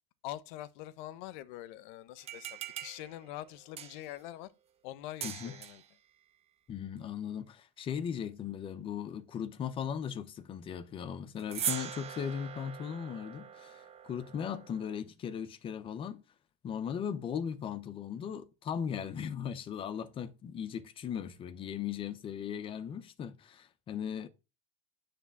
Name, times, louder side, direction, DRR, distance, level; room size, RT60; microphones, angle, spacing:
voice 1, 0.2-4.5 4.8-5.8, left 14 dB, 55° left, 0.8 m, -44 dB
sound 1, 2.2-4.2 5.2-5.9 11.4-15.0, right 9 dB, 20° right, 0.7 m, -41 dB
voice 2, 5.2-5.6 6.7-16.2 16.6-24.3, left 8 dB, 20° left, 0.6 m, -38 dB
9.7 x 3.4 x 7.0 m
supercardioid pair, 170°, 30 cm